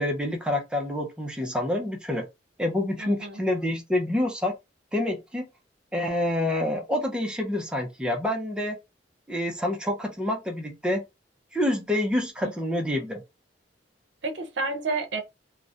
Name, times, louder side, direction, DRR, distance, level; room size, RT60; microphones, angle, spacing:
voice 1, 0.0-2.3 2.6-4.5 4.9-5.4 5.9-8.8 9.3-11.0 11.5-13.2, left 1 dB, 5° right, 0.4 m, -27 dB
voice 2, 3.0-3.4 12.4-12.5 14.2-15.2, right 3 dB, 80° right, 0.5 m, -30 dB
2.3 x 2.0 x 2.7 m
head